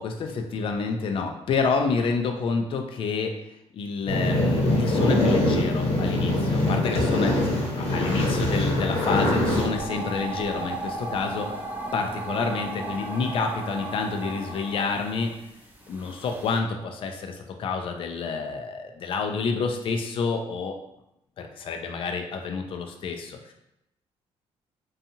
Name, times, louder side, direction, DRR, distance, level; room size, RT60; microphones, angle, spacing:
voice 1, 0.0-3.4 3.7-7.5 7.8-11.5 11.9-15.3 15.9-20.8 21.4-23.5, left 4 dB, 50° left, 4 dB, 0.4 m, -28 dB
sound 1, 4.1-9.7, left 1 dB, 80° left, 0.9 m, -23 dB
sound 2, 9.4-16.6, right 2 dB, 15° right, 0.5 m, -36 dB
2.7 x 2.3 x 2.7 m, 0.84 s
cardioid pair, 110°, 11 cm